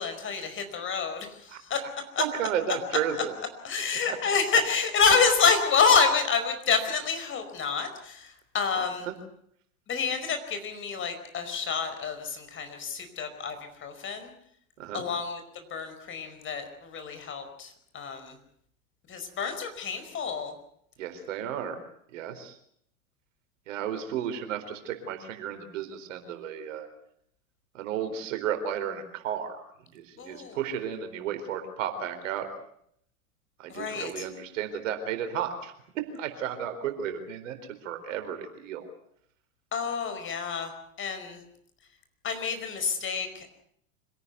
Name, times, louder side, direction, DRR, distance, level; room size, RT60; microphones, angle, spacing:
voice 1, 0.0-1.8 2.1-2.2 3.6-9.1 9.9-14.3 14.9-15.4 15.7-18.3 19.1-20.5 30.2-30.6 33.7-34.3 39.7-40.7 41.0-41.4 42.2-43.5, left 5 dB, 30° left, 8 dB, 5.1 m, -28 dB
voice 2, 2.2-3.3 8.7-9.1 14.8-15.1 21.0-21.8 22.1-22.6 23.7-26.9 27.7-32.5 33.6-35.7 36.1-37.6 37.8-38.9, right 8 dB, 60° right, 7 dB, 4.3 m, -33 dB
26.0 x 18.0 x 8.1 m, 0.69 s
figure-of-eight pair, 95°, 42 cm